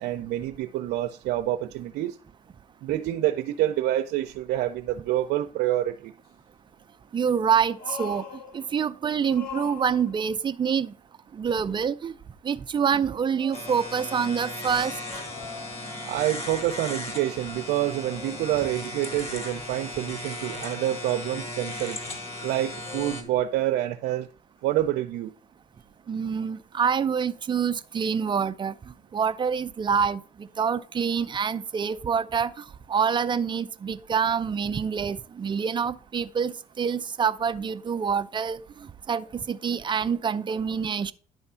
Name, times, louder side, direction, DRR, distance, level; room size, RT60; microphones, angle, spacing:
voice 1, 0.0-2.2 2.8-6.1 16.0-22.0 22.4-24.3 24.6-25.3, right 13 dB, 80° right, 0.6 m, -27 dB
sound 1, 6.2-6.3 7.7-9.0 9.2-10.4 13.4-15.9 20.2-21.9 22.3-23.7 24.8-24.9, left 5 dB, 65° left, 2.1 m, -44 dB
voice 2, 7.1-8.2 8.5-10.9 11.3-12.1 12.4-15.0 26.1-28.7 29.1-32.5 32.9-38.6 39.1-41.1, right 7 dB, 30° right, 0.5 m, -26 dB
sound 2, 13.5-23.2, left 2 dB, 40° left, 2.0 m, -36 dB
10.5 x 3.5 x 5.5 m
cardioid pair, 110°, 17 cm